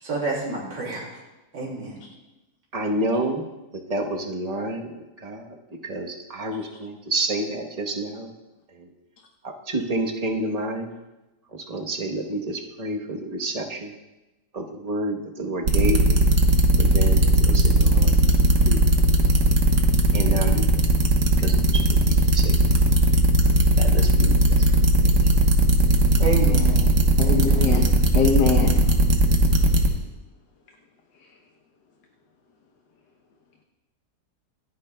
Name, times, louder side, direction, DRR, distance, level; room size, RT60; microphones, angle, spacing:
voice 1, 0.0-1.1 1.5-2.0 26.2-26.9 27.2-27.8, right 3 dB, 90° right, -4 dB, 3.0 m, -28 dB
voice 2, 2.7-3.4 3.7-5.6 5.8-8.3 8.7-8.9 9.4-10.9 11.5-13.9 14.5-16.3 16.8-18.8 20.1-20.7 21.4-22.6 23.8-24.8, right 1 dB, 25° right, 1 dB, 1.0 m, -29 dB
sound 1, 15.7-29.9, right 1 dB, 70° right, 1.8 m, -18 dB
voice 3, 27.2-28.8, left 5 dB, 80° left, 2 dB, 1.6 m, -23 dB
27.0 x 9.5 x 2.3 m, 1.0 s
omnidirectional pair, 1.9 m